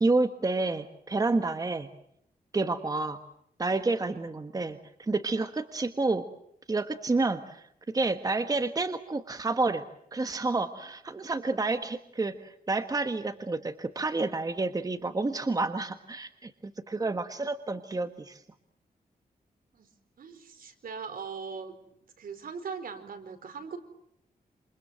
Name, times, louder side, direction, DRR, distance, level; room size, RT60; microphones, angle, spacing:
voice 1, 0.0-1.9 2.5-3.2 3.6-6.3 6.7-9.8 10.1-18.4, right 3 dB, 25° right, 8 dB, 1.4 m, -29 dB
voice 2, 20.2-21.8 22.2-23.8, right 5 dB, 70° right, 8 dB, 4.4 m, -40 dB
28.0 x 27.0 x 7.6 m, 0.73 s
wide cardioid pair, 145°, 15 cm